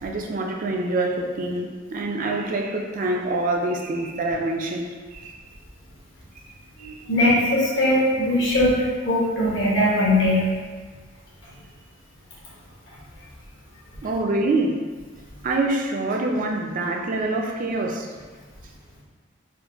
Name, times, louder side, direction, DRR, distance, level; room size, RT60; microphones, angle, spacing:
voice 1, 0.0-5.4 6.8-7.0 14.0-14.8 15.4-18.1, right 2 dB, 40° right, 1 dB, 0.4 m, -26 dB
voice 2, 6.8-10.4, left 1 dB, 65° left, -7 dB, 1.3 m, -20 dB
3.8 x 2.5 x 3.5 m, 1.5 s
head